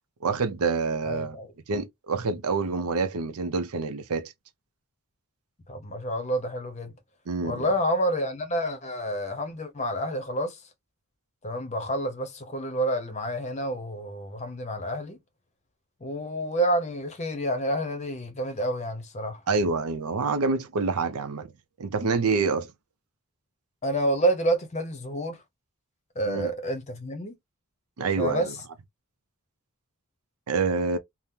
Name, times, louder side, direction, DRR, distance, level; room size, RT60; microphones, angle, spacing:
voice 1, 0.2-1.4 1.7-4.3 7.3-7.6 19.5-21.5 21.8-22.7 26.3-26.5 28.0-28.5 30.5-31.0, right 4 dB, 80° right, 0.5 m, -27 dB
voice 2, 1.0-1.5 5.7-6.9 7.4-10.6 11.4-15.2 16.0-19.4 23.8-25.4 26.2-27.3 28.2-28.6, right 1 dB, 30° left, 0.7 m, -29 dB
3.6 x 2.0 x 2.6 m
head